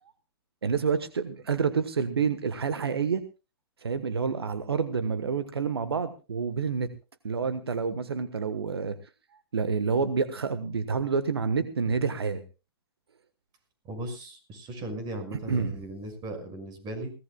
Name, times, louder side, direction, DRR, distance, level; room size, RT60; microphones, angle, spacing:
voice 1, 0.6-3.2 3.8-6.9 7.2-9.0 9.5-12.4 15.3-15.8, right 5 dB, 85° right, 11 dB, 1.3 m, -28 dB
voice 2, 13.8-17.1, right 1 dB, 35° right, 8 dB, 6.0 m, -37 dB
22.5 x 17.5 x 2.3 m, 0.33 s
hypercardioid pair, 115°, 13 cm